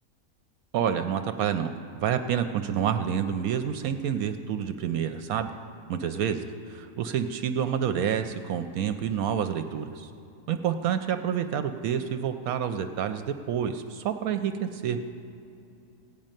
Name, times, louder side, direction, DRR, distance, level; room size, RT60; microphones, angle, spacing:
voice 1, 0.7-1.7 2.0-5.5 5.9-6.4 6.7-10.1 10.5-15.0, right 8 dB, 75° right, 8 dB, 1.0 m, -28 dB
16.0 x 5.4 x 9.0 m, 2.7 s
omnidirectional pair, 1.6 m